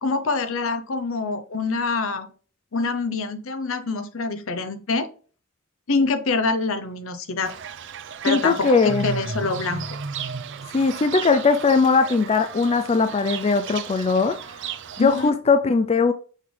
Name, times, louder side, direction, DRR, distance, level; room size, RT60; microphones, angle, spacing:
voice 1, 0.0-2.3 2.7-5.1 5.9-7.5 8.2-9.9 15.0-15.3, left 3 dB, 65° left, 0.8 m, -25 dB
Fowl / Bird, 7.4-15.3, right 6 dB, 60° right, 0.6 m, -34 dB
voice 2, 8.3-9.1 10.7-14.4 15.0-16.1, left 4 dB, 30° left, 0.4 m, -19 dB
6.5 x 5.1 x 3.3 m
head